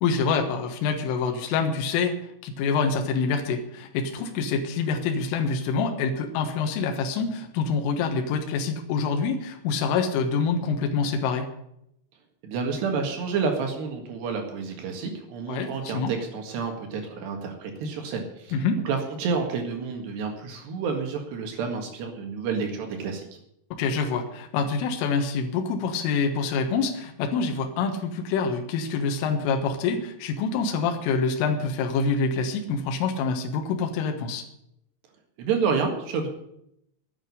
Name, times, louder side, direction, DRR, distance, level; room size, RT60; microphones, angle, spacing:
voice 1, 0.0-11.5 15.5-16.1 18.5-18.8 23.8-34.5, left 5 dB, 75° left, 4 dB, 3.9 m, -26 dB
voice 2, 12.4-18.5 18.9-23.3 35.4-36.3, right 5 dB, 65° right, 4 dB, 3.6 m, -29 dB
10.5 x 9.1 x 9.9 m, 0.76 s
omnidirectional pair, 6.0 m